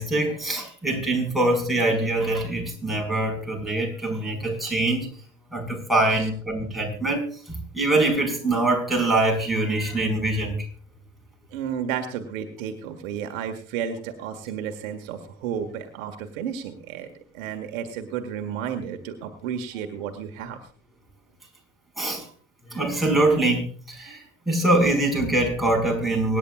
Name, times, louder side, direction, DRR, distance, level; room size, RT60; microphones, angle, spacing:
voice 1, 0.0-5.1 5.5-10.6 22.0-22.2 22.7-26.4, right 2 dB, ahead, -1 dB, 5.5 m, -24 dB
voice 2, 11.5-20.6 24.1-24.2, right 8 dB, 65° right, 6 dB, 1.8 m, -32 dB
24.5 x 10.5 x 2.5 m, 0.44 s
hypercardioid pair, 75°, 42 cm